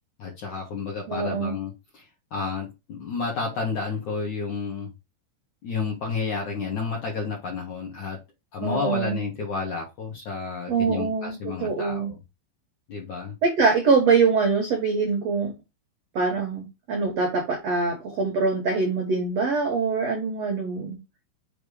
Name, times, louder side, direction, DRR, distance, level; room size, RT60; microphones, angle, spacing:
voice 1, 0.2-4.9 5.6-8.2 8.5-12.2 12.9-13.4, left 4 dB, 60° left, 2.0 m, -31 dB
voice 2, 1.1-1.5 8.6-9.2 10.7-12.1 13.4-15.5 16.1-21.0, right 4 dB, 90° right, 1.4 m, -24 dB
7.3 x 3.2 x 4.8 m
omnidirectional pair, 5.4 m